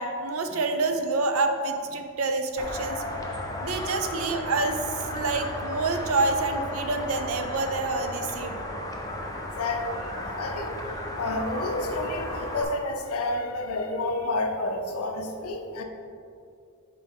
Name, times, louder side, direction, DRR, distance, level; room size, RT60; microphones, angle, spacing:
voice 1, 0.0-3.0 3.6-8.6, right 3 dB, 70° right, 6 dB, 0.6 m, -27 dB
sound 1, 2.6-12.6, left 1 dB, 15° left, 0.6 m, -34 dB
voice 2, 9.3-10.7 11.2-15.8, left 2 dB, 80° left, 4 dB, 0.7 m, -30 dB
6.6 x 4.5 x 3.5 m, 2.5 s
head